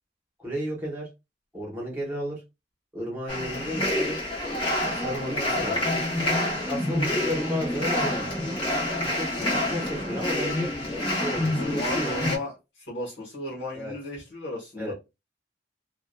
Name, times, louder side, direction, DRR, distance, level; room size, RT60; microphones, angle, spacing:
voice 1, 0.4-1.1 1.5-2.4 2.9-4.2 4.9-5.9 6.7-8.3 9.0-9.3 9.7-10.7 11.1-12.2 13.7-13.9 14.8-14.9, equal, 10° right, -4 dB, 1.0 m, -33 dB
sound 1, 3.3-12.4, left 1 dB, 30° left, 0.8 m, -27 dB
voice 2, 9.3-9.8 11.5-14.9, left 2 dB, 70° left, -5 dB, 1.1 m, -35 dB
2.6 x 2.2 x 2.2 m, 0.24 s
head